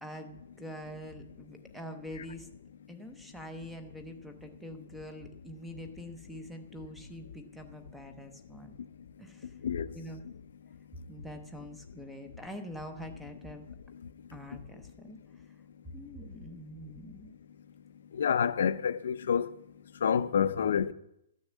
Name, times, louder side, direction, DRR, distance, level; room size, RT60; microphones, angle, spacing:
voice 1, 0.0-2.5 2.9-8.7 9.2-9.5 9.9-10.2 11.1-13.6 14.3-15.2 15.9-17.3, equal, ahead, 0.6 m, -45 dB
voice 2, 18.2-19.5 20.0-20.9, left 7 dB, 60° left, 0.6 m, -27 dB
13.0 x 6.4 x 8.4 m
hypercardioid pair, 180°, 0 cm